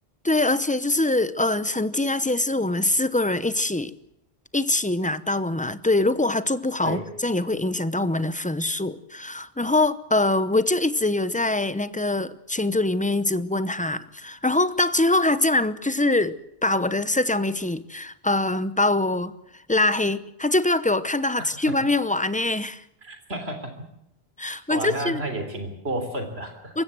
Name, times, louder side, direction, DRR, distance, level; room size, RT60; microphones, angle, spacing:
voice 1, 0.2-3.9 4.5-19.3 19.7-22.8 24.4-25.2 26.7-26.8, left 2 dB, 10° left, 0.7 m, -23 dB
voice 2, 21.4-21.8 23.0-23.7 24.7-26.7, right 1 dB, 90° right, 3.8 m, -31 dB
26.5 x 15.5 x 7.6 m
omnidirectional pair, 1.0 m